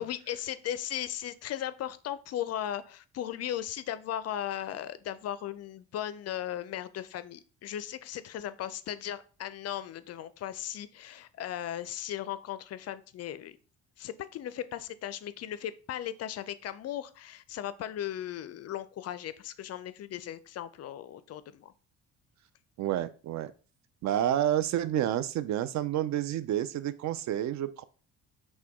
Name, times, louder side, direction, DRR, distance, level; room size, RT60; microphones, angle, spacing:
voice 1, 0.0-13.6 14.0-21.7, left 11 dB, 45° left, 14 dB, 0.4 m, -37 dB
voice 2, 22.8-23.5 24.0-27.8, right 11 dB, 50° right, 14 dB, 0.5 m, -29 dB
5.7 x 2.2 x 3.5 m, 0.37 s
hypercardioid pair, 60°, 36 cm